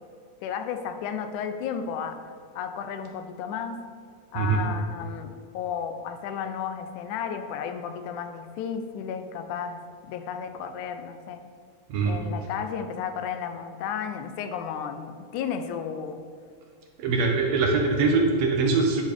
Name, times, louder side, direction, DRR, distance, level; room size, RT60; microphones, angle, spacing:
voice 1, 0.4-2.2 2.6-3.8 4.3-11.4 12.1-16.2, left 7 dB, 90° left, 8 dB, 2.1 m, -33 dB
voice 2, 17.0-19.1, right 3 dB, 70° right, 1 dB, 1.8 m, -23 dB
10.0 x 4.1 x 4.9 m, 2.1 s
omnidirectional pair, 3.4 m